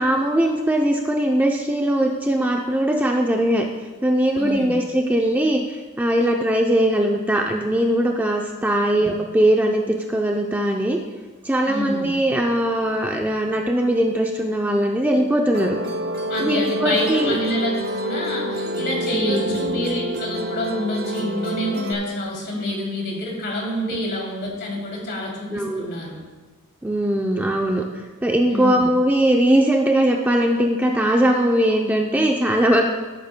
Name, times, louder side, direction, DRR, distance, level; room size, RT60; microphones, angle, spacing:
voice 1, 0.0-3.7 4.0-11.0 11.4-15.8 16.4-17.4 19.1-19.6 23.9-24.0 25.5-25.9 26.8-27.9 28.2-32.8, right 1 dB, 5° right, 1 dB, 0.5 m, -20 dB
voice 2, 4.4-4.8 9.0-9.1 11.7-12.1 16.3-17.7 18.0-26.2 28.5-28.9, left 1 dB, 50° left, -2 dB, 2.8 m, -27 dB
Musical instrument, 15.5-21.9, equal, 45° right, 0.8 m, -27 dB
16.5 x 8.6 x 2.2 m, 1.3 s
head